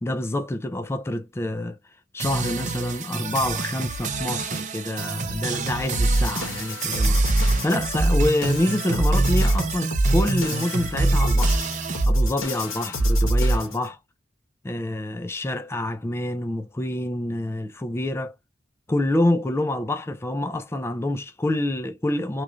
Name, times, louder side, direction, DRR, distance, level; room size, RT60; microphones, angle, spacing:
voice 1, 0.0-1.8 2.1-11.6 12.1-14.0 14.6-18.3 18.9-22.4, left 1 dB, 15° left, 0.3 m, -27 dB
sound 1, 2.2-12.1, right 4 dB, 40° right, 0.6 m, -29 dB
sound 2, 5.9-13.9, right 1 dB, 85° left, 1.2 m, -22 dB
3.1 x 2.4 x 2.4 m
head